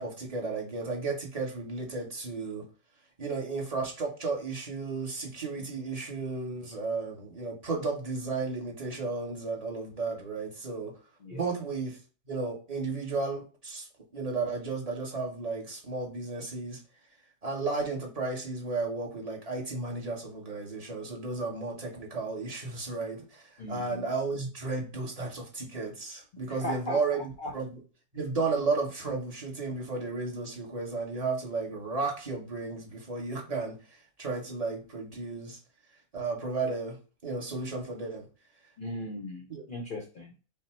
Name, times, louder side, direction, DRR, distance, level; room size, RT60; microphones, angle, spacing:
voice 1, 0.0-2.7 3.2-11.0 11.3-12.0 12.3-13.8 14.1-16.8 17.4-27.8 28.1-33.8 34.2-35.6 36.1-38.3 39.5-39.6, right 3 dB, 30° right, -1 dB, 1.0 m, -33 dB
voice 2, 23.6-24.0 26.4-27.5 38.8-40.4, left 1 dB, 55° left, 3 dB, 0.6 m, -38 dB
5.3 x 2.1 x 4.3 m, 0.36 s
omnidirectional pair, 1.5 m